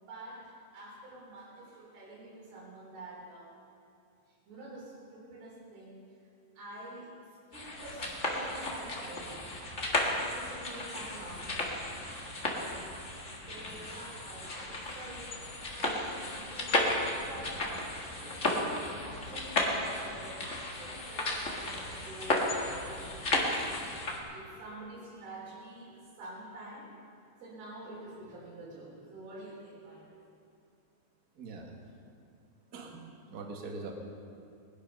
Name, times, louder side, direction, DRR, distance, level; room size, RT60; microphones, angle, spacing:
voice 1, 0.0-3.5 4.3-6.0 6.6-9.5 9.9-11.9 12.5-12.9 13.5-23.9 24.3-26.9 27.4-30.2, right 1 dB, 85° right, -4 dB, 5.5 m, -47 dB
sound 1, 7.5-24.2, left 2 dB, 50° left, 0.8 m, -34 dB
voice 2, 31.3-31.7 32.7-33.9, right 3 dB, 50° right, 1 dB, 1.1 m, -43 dB
20.5 x 11.5 x 5.4 m, 2.6 s
omnidirectional pair, 4.4 m